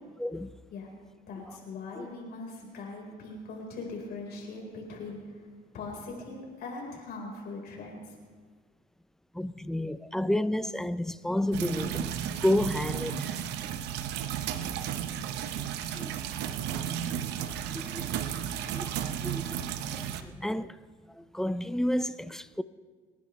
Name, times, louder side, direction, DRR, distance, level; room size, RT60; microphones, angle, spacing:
voice 1, 0.2-0.5 2.0-2.1 9.3-13.4 14.0-14.1 15.9-16.1 16.8-17.0 17.7-18.4 18.7-18.9 19.2-19.6 19.9-20.8 21.1-22.6, left 1 dB, 5° left, 0.4 m, -31 dB
voice 2, 1.3-5.2 5.7-8.1, left 3 dB, 70° left, 4.1 m, -40 dB
sound 1, 11.5-20.2, right 9 dB, 85° right, 0.8 m, -34 dB
29.5 x 10.5 x 3.1 m
cardioid pair, 110°, 17 cm